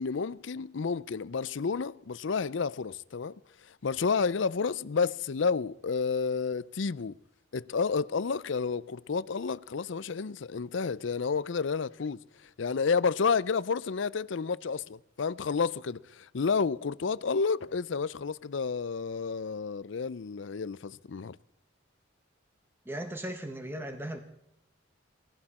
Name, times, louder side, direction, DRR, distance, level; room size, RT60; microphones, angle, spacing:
voice 1, 0.0-7.2 7.5-21.4, left 5 dB, 70° left, 0.5 m, -30 dB
voice 2, 22.9-24.2, right 1 dB, 10° right, 1.2 m, -37 dB
20.0 x 16.0 x 4.3 m
head